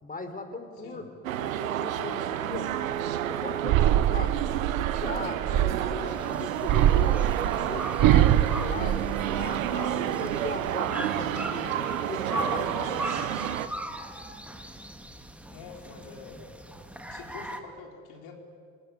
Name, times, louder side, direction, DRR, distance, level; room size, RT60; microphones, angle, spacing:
voice 1, 0.0-1.0 1.4-2.7 3.3-4.4 4.8-7.2 7.6-9.9 10.2-13.0, left 3 dB, 20° left, 7 dB, 4.8 m, -38 dB
sound 1, 1.2-13.7, right 11 dB, 85° right, 1.2 m, -30 dB
sound 2, 3.6-6.0 6.6-9.7 10.1-10.7, right 12 dB, 55° right, 1.2 m, -24 dB
sound 3, 6.1-17.6, right 1 dB, 5° right, 2.6 m, -39 dB
voice 2, 15.5-16.5 17.1-18.4, left 5 dB, 65° left, 2 dB, 5.2 m, -45 dB
27.5 x 20.0 x 9.9 m, 2.2 s
hypercardioid pair, 65°, 39 cm